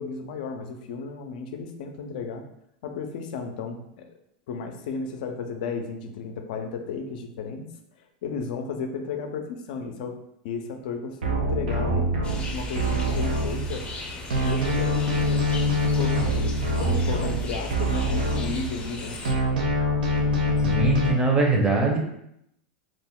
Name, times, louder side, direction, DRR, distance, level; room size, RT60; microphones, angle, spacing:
voice 1, 0.0-2.4 2.8-4.1 4.5-7.7 8.2-10.2 10.4-12.1 12.5-13.8 14.4-19.2, left 5 dB, 70° left, 5 dB, 0.5 m, -33 dB
sound 1, 11.2-14.0 14.3-19.0 19.3-21.1, equal, 85° right, 0.6 m, -25 dB
sound 2, 12.2-19.3, left 2 dB, 25° left, 0.6 m, -38 dB
voice 2, 20.6-22.0, right 3 dB, 20° right, 0 dB, 0.7 m, -22 dB
2.5 x 2.0 x 3.6 m, 0.77 s
hypercardioid pair, 115°, 5 cm